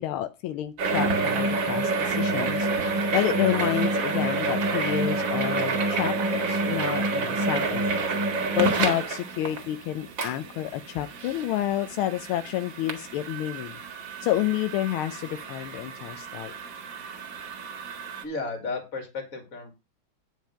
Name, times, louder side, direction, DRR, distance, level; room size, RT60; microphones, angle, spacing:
voice 1, 0.0-2.7 3.1-7.8 8.5-13.8 14.2-16.5, left 13 dB, 85° left, 11 dB, 1.5 m, -29 dB
sound 1, 0.8-18.2, right 3 dB, 65° right, 2.4 m, -28 dB
voice 2, 18.2-19.7, left 3 dB, 40° left, 5 dB, 2.7 m, -33 dB
9.1 x 5.1 x 5.6 m, 0.27 s
omnidirectional pair, 2.3 m